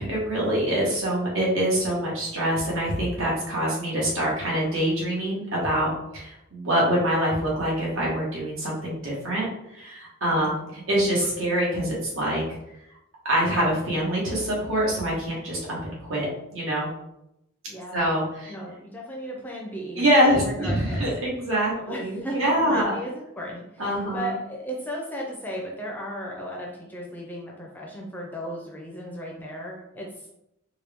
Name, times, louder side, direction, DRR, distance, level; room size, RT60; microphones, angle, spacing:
voice 1, 0.0-9.5 9.7-12.4 13.2-16.3 16.5-16.9 17.9-18.5 20.0-23.0 23.8-24.3, equal, 75° right, -5 dB, 1.5 m, -25 dB
voice 2, 10.4-10.8 17.7-18.2 18.5-21.0 21.7-30.3, equal, 10° left, -2 dB, 0.5 m, -35 dB
4.4 x 2.3 x 3.5 m, 0.84 s
head